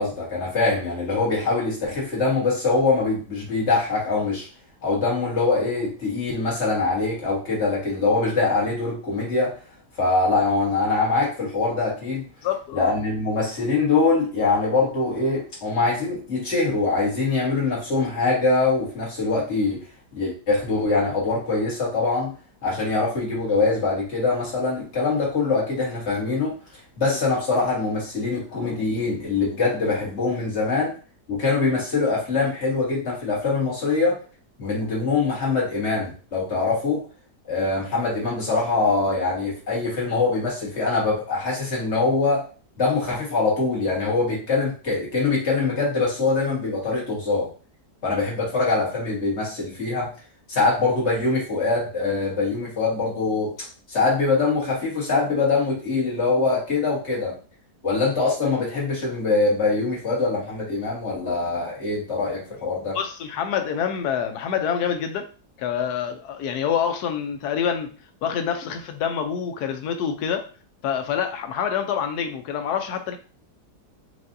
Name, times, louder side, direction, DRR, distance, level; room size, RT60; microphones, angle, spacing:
voice 1, 0.0-4.5 4.8-9.5 10.0-12.3 12.7-19.8 20.1-22.3 22.6-26.5 27.0-30.9 31.3-34.2 34.6-37.0 37.5-42.4 42.8-47.5 48.0-50.1 50.5-53.5 53.9-57.4 57.8-63.0, left 3 dB, 45° left, -4 dB, 1.7 m, -23 dB
voice 2, 12.4-12.8 62.9-65.3 65.6-67.9 68.2-70.5 70.8-73.2, left 8 dB, 80° left, 6 dB, 1.1 m, -26 dB
4.8 x 2.5 x 2.6 m, 0.38 s
omnidirectional pair, 1.8 m